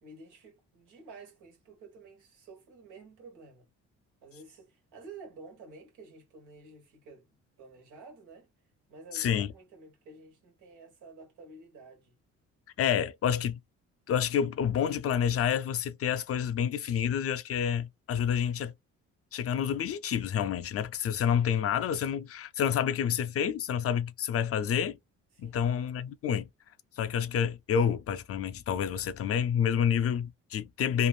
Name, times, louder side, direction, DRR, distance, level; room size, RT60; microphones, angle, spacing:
voice 1, 0.0-3.7 4.2-8.5 8.9-12.1 25.3-25.7, right 3 dB, 85° right, 1.5 m, -51 dB
voice 2, 9.1-9.5 12.8-13.6 14.1-18.7 19.3-25.0 25.4-26.5 27.0-31.1, left 8 dB, 50° left, 0.4 m, -28 dB
3.2 x 2.4 x 2.3 m
cardioid pair, 90°, 30 cm